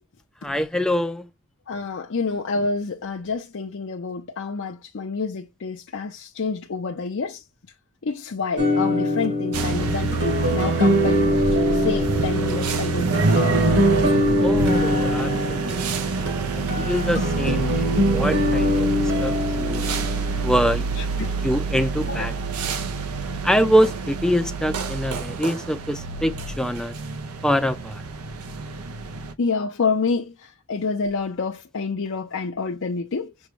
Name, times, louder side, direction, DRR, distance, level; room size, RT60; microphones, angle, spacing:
voice 1, 0.4-1.3 14.4-16.2 16.5-18.9 19.2-19.9 20.4-20.9 21.4-22.3 23.4-27.0 27.4-28.0, equal, 5° left, 0.5 m, -24 dB
voice 2, 1.7-7.4 8.0-11.4 11.7-13.1 19.5-19.6 19.9-20.6 21.0-21.4 22.1-22.3 29.4-33.3, left 4 dB, 60° left, 0.6 m, -28 dB
sound 1, 8.6-21.0, equal, 55° right, 1.4 m, -23 dB
sound 2, 9.5-29.3, right 4 dB, 85° right, 0.6 m, -27 dB
6.2 x 2.2 x 3.2 m
head